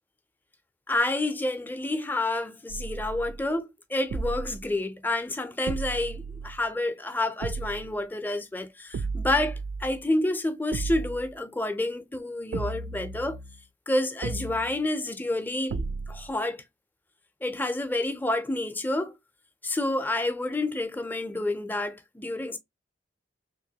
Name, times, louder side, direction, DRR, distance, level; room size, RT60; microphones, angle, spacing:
voice 1, 0.9-13.4 13.9-16.6 17.4-19.2 19.6-22.6, left 2 dB, 10° left, 0.4 m, -29 dB
sound 1, 2.7-3.5 4.1-4.7 5.7-6.7 7.4-8.0 8.9-10.0 10.7-11.3 12.5-13.6 14.2-14.9 15.7-16.3, right 4 dB, 75° right, 0.3 m, -34 dB
3.4 x 2.9 x 2.7 m
head